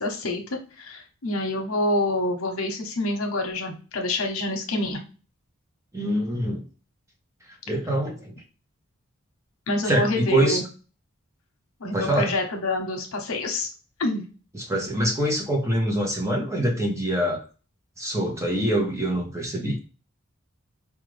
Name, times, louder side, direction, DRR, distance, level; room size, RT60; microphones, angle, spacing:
voice 1, 0.0-5.0 9.7-10.6 11.8-13.7 14.0-14.2, left 2 dB, 75° left, 3 dB, 0.9 m, -27 dB
voice 2, 5.9-6.6 7.7-8.3 9.8-10.6 11.9-12.3 14.5-17.4 18.0-19.8, right 1 dB, 15° right, 1 dB, 0.7 m, -24 dB
4.9 x 2.3 x 3.1 m, 0.35 s
head